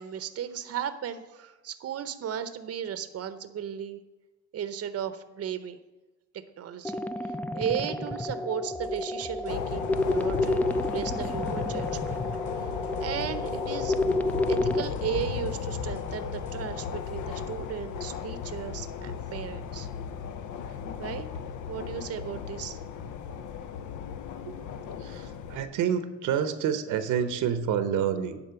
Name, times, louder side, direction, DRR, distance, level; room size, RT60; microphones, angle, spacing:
voice 1, 0.0-4.0 4.5-5.8 6.6-12.2 13.0-14.0 14.5-19.9 20.6-21.3 21.7-22.8, right 8 dB, 50° right, 11 dB, 0.7 m, -35 dB
sound 1, 6.8-14.8, left 2 dB, 5° left, 0.3 m, -30 dB
sound 2, 8.7-16.6, equal, 25° left, 1.9 m, -48 dB
sound 3, 9.5-25.6, left 7 dB, 80° left, 0.6 m, -35 dB
voice 2, 25.0-28.4, right 8 dB, 85° right, 10 dB, 0.8 m, -28 dB
9.7 x 4.2 x 6.9 m, 1.1 s
cardioid pair, 90°, 30 cm